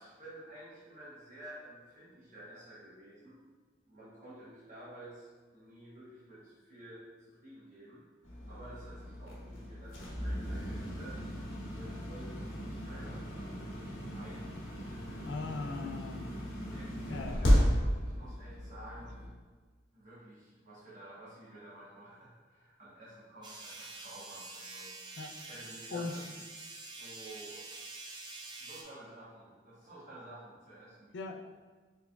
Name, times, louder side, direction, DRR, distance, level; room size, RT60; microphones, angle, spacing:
voice 1, 0.0-3.5 3.9-8.0 8.5-11.3 11.7-15.8 16.5-19.3 19.9-24.9 25.4-27.6 28.6-31.2, right 1 dB, 40° right, -9 dB, 1.0 m, -52 dB
sound 1, 8.2-19.3, equal, 85° left, 0.9 m, -34 dB
voice 2, 15.2-16.4 17.1-17.4 25.2-25.4 25.9-26.2 31.1-31.4, left 3 dB, 65° left, 4 dB, 0.4 m, -39 dB
sound 2, 23.4-28.8, right 3 dB, 25° right, 0.3 m, -47 dB
4.5 x 3.4 x 2.2 m, 1.4 s
head